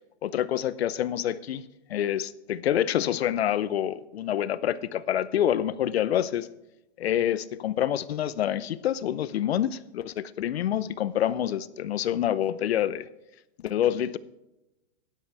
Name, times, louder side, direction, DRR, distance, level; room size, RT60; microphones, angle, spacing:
voice 1, 0.2-1.6 1.9-6.5 7.0-13.1 13.6-14.2, left 11 dB, 65° left, 0.8 m, -27 dB
13.0 x 10.5 x 3.5 m
hypercardioid pair, 145°, 33 cm